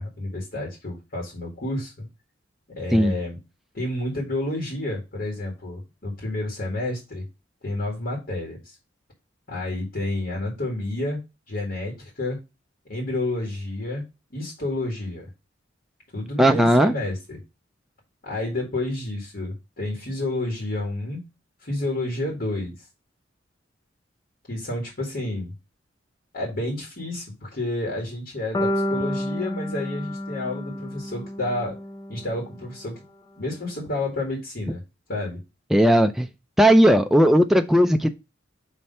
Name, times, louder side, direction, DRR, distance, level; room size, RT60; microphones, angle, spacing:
voice 1, 0.0-2.1 2.8-3.4 3.7-7.3 7.6-8.6 9.5-11.2 11.5-12.4 12.9-14.0 14.3-15.3 16.1-17.4 18.2-21.2 21.6-22.7 24.5-25.5 26.3-31.8 32.1-32.9 33.4-34.8 35.1-35.4, left 2 dB, 55° left, 2.0 m, -30 dB
voice 2, 16.4-16.9 35.7-36.3 36.6-38.1, equal, ahead, 0.3 m, -17 dB
sound 1, 28.5-32.6, left 1 dB, 20° left, 0.8 m, -30 dB
5.7 x 3.2 x 5.4 m
head